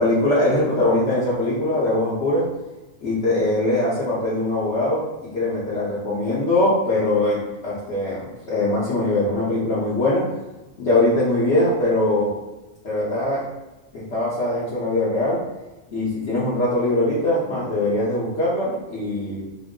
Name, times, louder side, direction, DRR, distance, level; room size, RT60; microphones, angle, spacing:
voice 1, 0.0-2.5 3.0-8.2 8.5-10.3 10.8-12.3 12.8-13.5 13.9-15.4 15.9-19.4, left 1 dB, 60° left, -9 dB, 1.3 m, -22 dB
6.1 x 2.2 x 3.7 m, 1.1 s
omnidirectional pair, 1.4 m